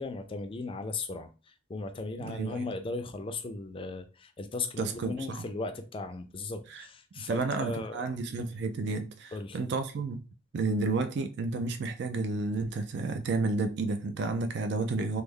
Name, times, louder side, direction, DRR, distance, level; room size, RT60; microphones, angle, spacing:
voice 1, 0.0-8.0 9.3-9.6, left 3 dB, 25° left, 0.4 m, -37 dB
voice 2, 2.2-2.7 4.8-5.5 6.7-6.9 7.2-10.2 10.5-15.2, right 3 dB, 60° right, 0.4 m, -31 dB
3.2 x 2.0 x 3.5 m
head